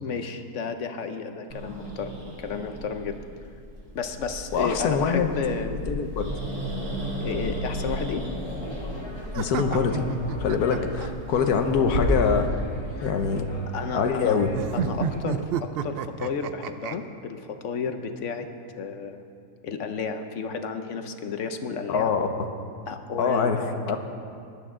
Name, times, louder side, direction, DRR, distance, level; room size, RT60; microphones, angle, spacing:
voice 1, 0.0-3.2 3.9-5.8 7.2-8.3 12.9-13.1 13.7-14.4 14.7-18.5 18.8-19.3 19.6-22.1 22.9-23.7, left 5 dB, 60° left, 7 dB, 1.0 m, -32 dB
Growling, 1.5-12.0, equal, 50° right, 2.6 m, -35 dB
voice 2, 4.5-5.3 5.9-6.3 9.3-10.1 10.4-12.5 13.0-13.5 13.9-14.5 21.9-22.3 23.2-23.6 23.9-24.0, left 6 dB, 80° left, 6 dB, 1.4 m, -24 dB
sound 1, 8.3-15.2, equal, 20° left, 1.1 m, -41 dB
sound 2, 9.3-11.5 14.5-17.0, right 7 dB, 85° right, 0.5 m, -31 dB
17.5 x 11.5 x 3.7 m, 2.4 s
omnidirectional pair, 1.6 m